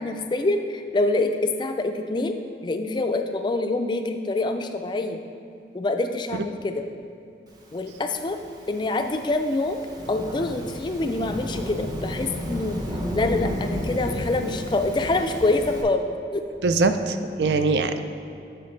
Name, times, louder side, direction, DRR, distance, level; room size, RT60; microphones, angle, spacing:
voice 1, 0.0-5.2 5.7-6.9 7.7-8.4 8.7-9.8 10.1-12.8 13.1-16.4 17.5-17.6, left 2 dB, 25° left, 6 dB, 0.3 m, -26 dB
Thunderstorm / Rain, 8.1-15.8, equal, 20° right, 0.7 m, -32 dB
voice 2, 16.6-18.0, right 3 dB, 70° right, 9 dB, 0.4 m, -22 dB
7.9 x 6.5 x 3.2 m, 2.7 s
head